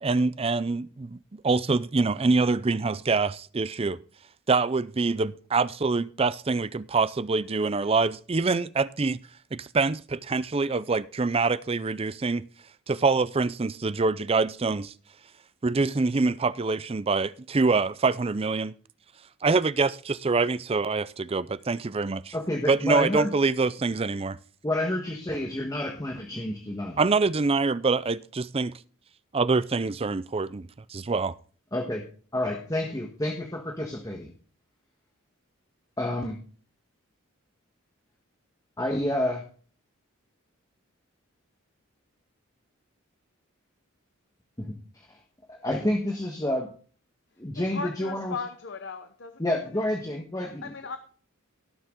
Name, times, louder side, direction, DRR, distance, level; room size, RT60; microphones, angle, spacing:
voice 1, 0.0-4.0 4.5-9.2 9.5-12.4 12.9-14.9 15.6-18.7 19.4-22.3 22.7-24.4 27.0-28.7 29.3-31.3, right 3 dB, 25° right, 0.4 m, -25 dB
voice 2, 22.3-23.3 24.6-27.0 31.7-32.1 32.3-34.3 36.0-36.4 38.8-39.4 44.6-45.2 45.5-46.7 47.4-48.4 49.4-50.7, left 1 dB, 15° left, 1.3 m, -29 dB
voice 3, 47.7-49.4 50.4-51.0, left 4 dB, 55° left, 0.9 m, -37 dB
18.0 x 7.0 x 3.7 m
head